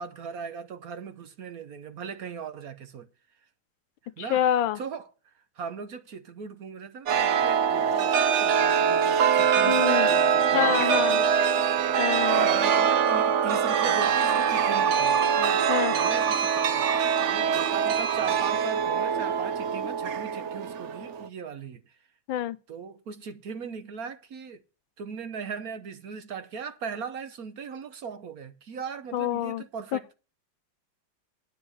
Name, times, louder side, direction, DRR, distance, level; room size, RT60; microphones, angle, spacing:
voice 1, 0.0-3.1 4.2-4.4 4.7-11.6 12.3-22.0 22.7-24.6 25.0-30.1, right 6 dB, 60° right, 1.2 m, -39 dB
voice 2, 4.3-4.8 9.7-10.1 10.5-11.2 12.0-12.5 15.7-15.9 22.3-22.6 29.1-29.6, left 11 dB, 85° left, 1.5 m, -26 dB
Chime, 7.1-21.3, right 7 dB, 85° right, 0.6 m, -23 dB
9.9 x 7.8 x 6.3 m
omnidirectional pair, 2.1 m